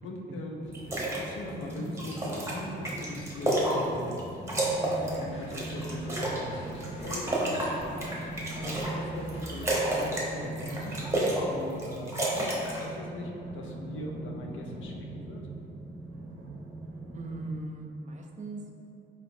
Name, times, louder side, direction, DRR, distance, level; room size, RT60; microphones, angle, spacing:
voice 1, 0.0-4.2 5.1-15.5, left 1 dB, 75° left, 0 dB, 0.5 m, -41 dB
sound 1, 0.6-17.4, right 2 dB, 80° right, 0.6 m, -41 dB
sound 2, 0.7-1.2 1.6-4.2 4.5-6.4 6.8-8.9 9.3-10.3 10.5-11.4 11.7-12.8, right 1 dB, 15° right, 0.9 m, -30 dB
sound 3, 4.6-10.4, equal, 30° left, 0.8 m, -48 dB
voice 2, 8.5-8.9 17.1-18.7, right 2 dB, 35° right, 2 dB, 0.5 m, -40 dB
4.4 x 2.8 x 2.6 m, 2.7 s
cardioid pair, 75°, 20 cm